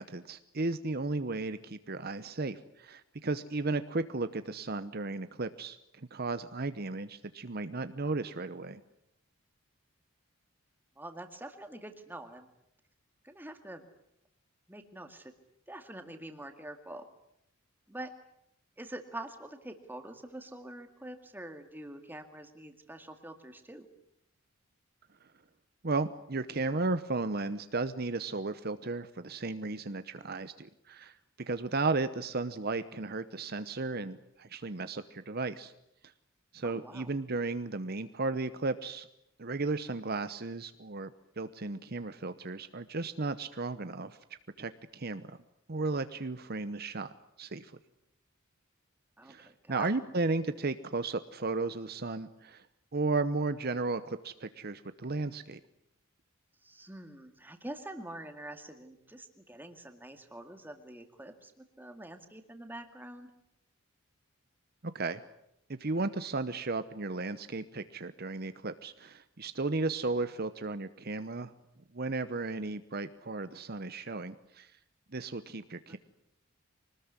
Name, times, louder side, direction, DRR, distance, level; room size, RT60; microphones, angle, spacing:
voice 1, 0.0-8.8 25.8-31.2 31.5-35.7 36.5-39.1 39.4-41.1 41.4-44.2 44.6-45.4 45.7-47.1 47.4-47.7 49.2-52.7 52.9-55.6 64.9-65.2 65.7-71.5 71.9-74.7 75.1-76.0, right 3 dB, 45° right, 12 dB, 0.9 m, -34 dB
voice 2, 11.0-12.5 13.2-13.8 14.7-15.3 15.7-17.1 17.9-18.1 18.8-23.9 30.1-30.3 36.6-37.1 49.2-49.9 56.6-63.3 75.9-76.0, right 1 dB, 10° right, 7 dB, 2.1 m, -45 dB
25.0 x 19.5 x 9.7 m, 0.80 s
head